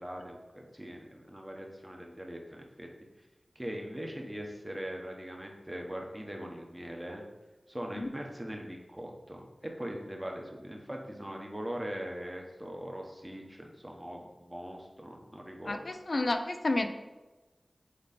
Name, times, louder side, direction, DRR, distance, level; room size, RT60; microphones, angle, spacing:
voice 1, 0.0-2.9 3.5-7.2 7.7-9.4 9.8-15.8, equal, 15° right, 1 dB, 1.1 m, -41 dB
voice 2, 15.7-16.9, left 2 dB, 55° left, 7 dB, 0.6 m, -30 dB
8.6 x 3.1 x 4.3 m, 1.1 s
wide cardioid pair, 80°, 0 cm